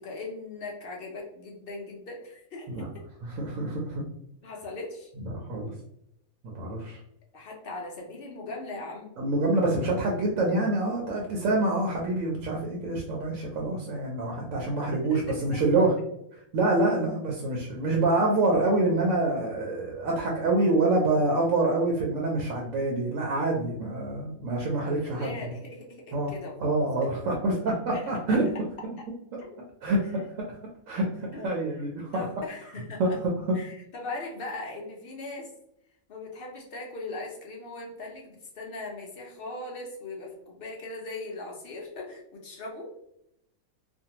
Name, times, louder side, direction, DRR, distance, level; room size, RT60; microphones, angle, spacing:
voice 1, 0.0-3.0 4.4-5.1 7.3-9.2 15.0-15.9 24.8-26.8 27.9-28.4 29.4-29.5 31.3-31.5 32.1-33.2 33.5-35.5 36.1-42.9, left 2 dB, 60° left, -1 dB, 0.6 m, -39 dB
voice 2, 3.2-4.1 5.5-5.7 6.5-7.0 9.2-15.9 16.3-25.4 26.1-26.3 26.6-28.7 29.8-30.2 30.9-31.1 31.4-32.2 33.0-33.6, right 2 dB, 70° right, -1 dB, 0.9 m, -26 dB
2.6 x 2.2 x 2.8 m, 0.78 s
omnidirectional pair, 1.5 m